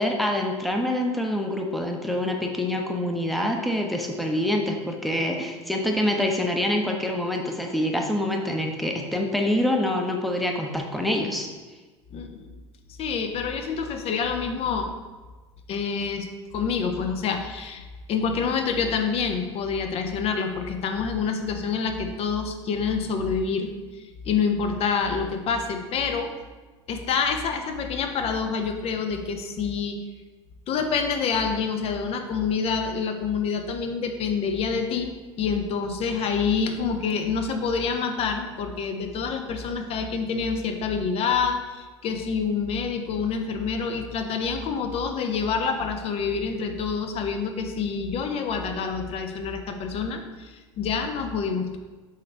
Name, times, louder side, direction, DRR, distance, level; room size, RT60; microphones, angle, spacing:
voice 1, 0.0-11.5, left 1 dB, ahead, 2 dB, 0.8 m, -26 dB
voice 2, 12.1-12.5 13.0-14.9 15.7-23.7 24.2-26.3 26.9-30.0 30.7-35.1 35.4-51.8, left 5 dB, 40° left, 6 dB, 0.8 m, -27 dB
7.6 x 3.3 x 4.2 m, 1.3 s
figure-of-eight pair, 70°, 16 cm